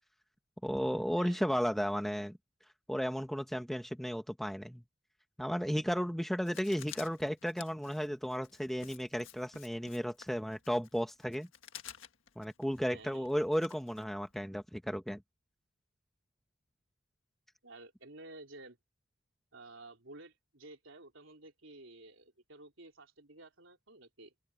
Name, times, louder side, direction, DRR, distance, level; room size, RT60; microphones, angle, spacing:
voice 1, 0.6-2.4 2.9-4.8 5.4-11.5 12.4-15.2, equal, ahead, 1.0 m, -34 dB
voice 2, 1.2-1.5 12.9-13.3 17.6-18.8 19.5-24.3, right 2 dB, 85° right, 4.0 m, -53 dB
Writing, 6.4-14.4, left 10 dB, 85° left, 1.6 m, -52 dB
open air
head